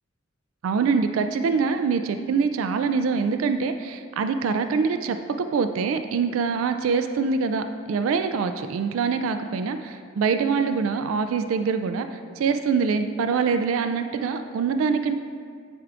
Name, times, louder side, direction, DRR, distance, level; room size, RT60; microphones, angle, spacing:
voice 1, 0.6-15.2, right 5 dB, 90° right, 8 dB, 0.3 m, -24 dB
10.5 x 4.6 x 2.5 m, 2.1 s
head